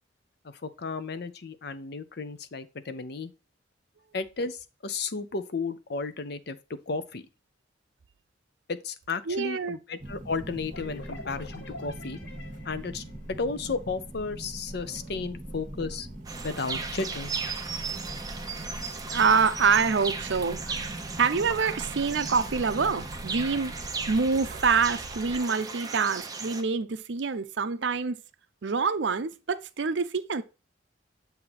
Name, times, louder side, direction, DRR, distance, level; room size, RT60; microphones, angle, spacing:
voice 1, 0.4-3.3 4.1-7.2 8.7-12.2 12.6-13.0 13.4-16.1 16.4-17.4, left 4 dB, 60° left, 0.6 m, -33 dB
voice 2, 9.3-9.8 19.1-23.7 24.1-28.2 28.6-30.4, right 5 dB, 70° right, 0.6 m, -26 dB
sound 1, 10.0-25.4, right 1 dB, 45° right, 1.4 m, -41 dB
sound 2, 10.7-14.2, left 3 dB, 85° left, 0.9 m, -47 dB
sound 3, 16.2-26.6, right 4 dB, 20° right, 0.8 m, -37 dB
7.9 x 2.8 x 5.8 m
head